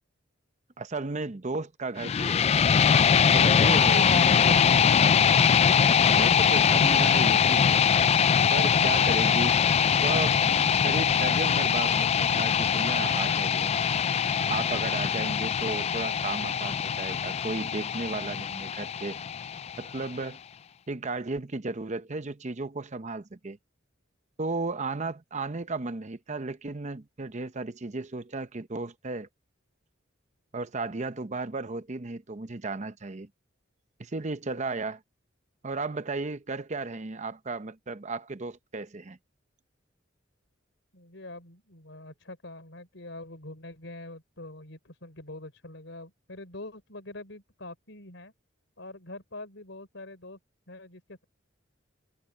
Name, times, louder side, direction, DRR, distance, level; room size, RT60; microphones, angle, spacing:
voice 1, 0.8-2.4 3.2-5.3 6.0-7.8 8.5-9.6 10.0-13.7 14.4-19.2 19.8-20.4 20.9-23.6 24.4-29.3 30.5-33.3 34.0-35.0 35.6-39.2, right 3 dB, 35° right, 0.8 m, -34 dB
sound 1, 2.0-20.0, left 7 dB, 35° left, 0.3 m, -23 dB
voice 2, 40.9-48.3 48.8-50.4 50.7-51.2, left 2 dB, 70° left, 5.2 m, -44 dB
head